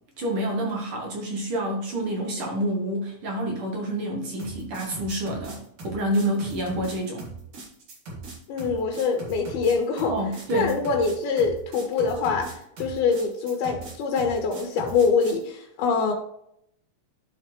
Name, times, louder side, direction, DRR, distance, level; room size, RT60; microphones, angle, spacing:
voice 1, 0.2-7.3 10.1-10.8, right 1 dB, 75° right, 0 dB, 1.2 m, -28 dB
sound 1, 4.4-15.4, right 3 dB, 60° right, 2.9 m, -39 dB
voice 2, 8.5-10.1 10.5-16.1, left 5 dB, 90° left, 1 dB, 2.8 m, -24 dB
12.0 x 4.2 x 3.0 m, 0.75 s
omnidirectional pair, 4.2 m